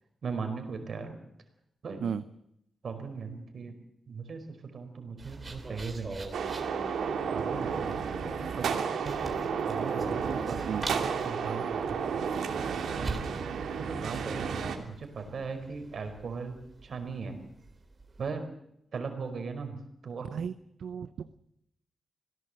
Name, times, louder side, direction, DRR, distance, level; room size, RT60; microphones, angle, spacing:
voice 1, 0.2-1.2 1.8-2.0 2.8-3.7 4.1-6.3 7.3-8.0 8.2-12.2 13.0-13.1 13.8-16.6 16.8-17.4 18.2-18.4 18.9-20.3, right 5 dB, 50° right, 6 dB, 4.7 m, -38 dB
sound 1, 5.2-18.3, right 2 dB, 25° right, 3.8 m, -44 dB
sound 2, 6.3-14.8, right 6 dB, 85° right, 2.9 m, -32 dB
voice 2, 20.2-20.5 20.8-21.4, right 7 dB, 70° right, 11 dB, 0.8 m, -35 dB
26.0 x 17.5 x 7.7 m, 0.77 s
wide cardioid pair, 135°, 0 cm